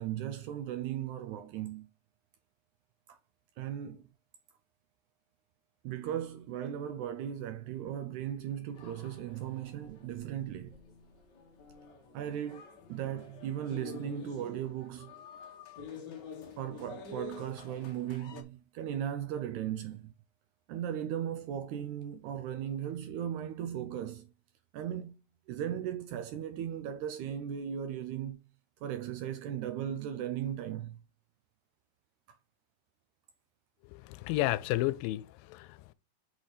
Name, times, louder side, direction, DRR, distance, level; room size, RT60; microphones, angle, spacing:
voice 1, 0.0-1.9 3.6-4.0 5.8-10.8 12.1-12.6 12.9-15.1 16.6-20.1 20.7-24.3 24.7-25.2 25.5-28.4 28.8-31.0, right 10 dB, 80° right, 1.8 m, -37 dB
sound 1, 8.7-18.4, left 5 dB, 70° left, 1.0 m, -49 dB
voice 2, 33.9-35.9, left 17 dB, 85° left, 2.3 m, -32 dB
6.0 x 4.2 x 4.9 m
omnidirectional pair, 3.9 m